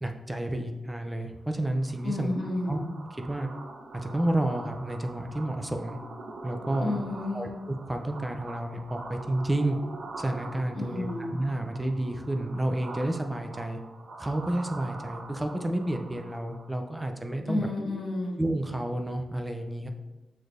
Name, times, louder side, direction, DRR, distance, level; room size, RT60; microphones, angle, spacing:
voice 1, 0.0-2.3 2.7-2.8 3.2-3.5 3.9-6.0 6.4-7.0 7.3-9.8 10.2-13.8 14.2-17.7 18.4-19.9, right 1 dB, 10° right, 5 dB, 0.3 m, -30 dB
sound 1, 1.5-16.8, right 3 dB, 65° right, 0.5 m, -44 dB
voice 2, 2.0-2.8 6.8-7.5 10.7-11.3 17.5-18.3, left 2 dB, 75° left, -6 dB, 1.2 m, -31 dB
6.2 x 3.3 x 2.5 m, 1.1 s
wide cardioid pair, 175°, 0 cm